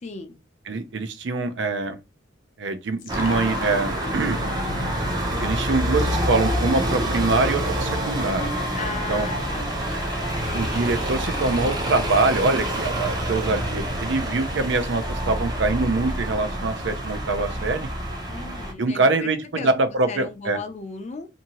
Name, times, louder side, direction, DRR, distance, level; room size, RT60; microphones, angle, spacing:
voice 1, 0.0-0.3 8.8-9.6 18.3-19.1 19.5-19.7 20.1-21.3, left 4 dB, 35° left, 0.5 m, -35 dB
voice 2, 0.7-2.0 2.6-4.4 5.4-8.5 9.1-9.3 10.5-17.9 18.8-20.6, right 3 dB, 65° right, 0.5 m, -24 dB
sound 1, 3.0-12.8, left 2 dB, 90° left, 0.7 m, -34 dB
sound 2, 3.1-18.7, right 1 dB, 20° right, 0.6 m, -27 dB
2.7 x 2.6 x 2.8 m
head